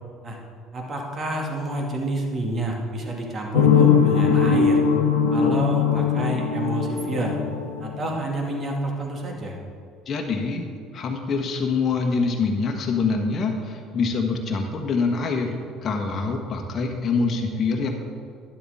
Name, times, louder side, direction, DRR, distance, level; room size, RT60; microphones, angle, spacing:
voice 1, 0.7-4.8 5.3-7.4 7.8-9.6, right 1 dB, 35° right, 0 dB, 2.4 m, -29 dB
sound 1, 3.5-8.3, left 6 dB, 85° left, 0.9 m, -20 dB
voice 2, 10.1-10.6 10.9-15.5 15.8-17.9, left 4 dB, 40° left, 1 dB, 1.3 m, -25 dB
12.0 x 10.0 x 3.7 m, 2.3 s
figure-of-eight pair, 60°, 0 cm